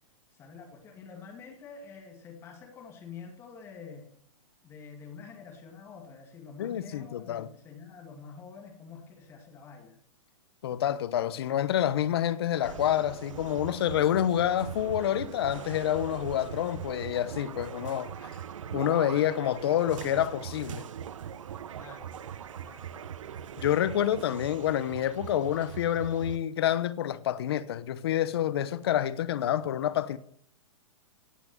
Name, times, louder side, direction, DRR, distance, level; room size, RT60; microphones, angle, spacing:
voice 1, 0.3-4.1 4.6-10.0 21.7-22.1 22.6-23.5, left 5 dB, 15° left, 2.2 m, -47 dB
voice 2, 6.6-7.5 10.6-18.3 18.7-20.9 23.6-30.2, left 11 dB, 50° left, 1.0 m, -28 dB
sound 1, 12.6-26.4, right 9 dB, 75° right, 1.0 m, -41 dB
17.0 x 6.1 x 9.6 m
hypercardioid pair, 170°, 17 cm